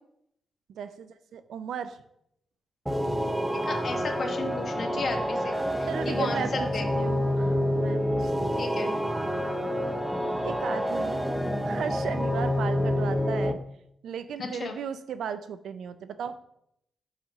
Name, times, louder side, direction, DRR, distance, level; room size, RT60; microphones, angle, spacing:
voice 1, 0.7-2.0 5.9-9.0 10.4-11.2 11.6-13.6 14.0-16.4, right 7 dB, 85° right, 12 dB, 0.5 m, -36 dB
sound 1, 2.9-13.5, equal, 5° right, 0.6 m, -28 dB
voice 2, 3.6-6.9 8.6-8.9 14.4-14.8, left 4 dB, 50° left, 4 dB, 1.2 m, -34 dB
5.3 x 4.9 x 5.6 m, 0.75 s
cardioid pair, 95°, 0 cm